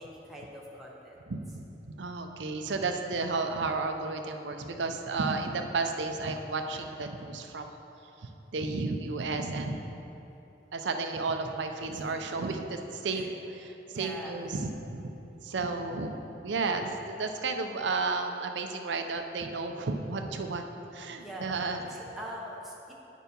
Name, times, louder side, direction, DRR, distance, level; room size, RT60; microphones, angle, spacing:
voice 1, 0.0-1.2 11.8-12.4 13.1-13.3 13.9-14.4 21.2-21.5 21.8-22.9, equal, ahead, -4 dB, 0.6 m, -43 dB
voice 2, 1.9-7.7 8.2-10.0 10.7-13.7 13.9-15.1 15.4-16.2 16.4-20.7 20.9-21.8, right 3 dB, 75° right, 5 dB, 0.6 m, -32 dB
9.0 x 4.6 x 5.2 m, 3.0 s
head